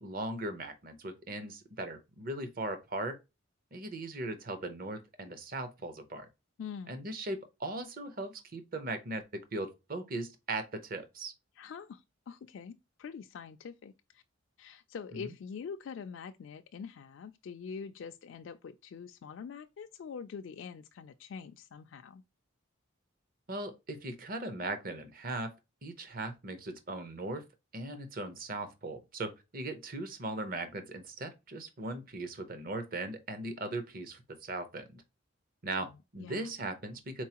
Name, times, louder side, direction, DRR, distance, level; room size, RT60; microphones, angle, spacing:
voice 1, 0.0-3.2 3.7-6.3 6.9-11.3 15.1-15.3 23.5-25.5 25.8-27.4 27.7-35.0 35.6-37.2, right 2 dB, 45° right, 0.7 m, -39 dB
voice 2, 6.6-7.0 11.6-14.2 14.6-22.2 35.8-36.5, left 6 dB, 65° left, 0.3 m, -45 dB
4.5 x 4.1 x 2.9 m
head